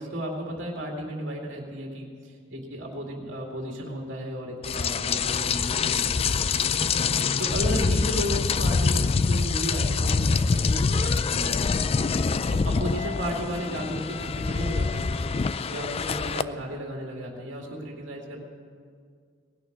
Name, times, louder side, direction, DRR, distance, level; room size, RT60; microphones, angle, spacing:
voice 1, 0.0-2.1 2.5-6.4 6.7-6.9 7.4-11.7 12.5-15.2 15.7-18.4, equal, 75° right, -1 dB, 2.3 m, -34 dB
Rain, 4.6-16.4, left 5 dB, 30° left, 0.3 m, -25 dB
19.0 x 6.6 x 9.6 m, 2.1 s
head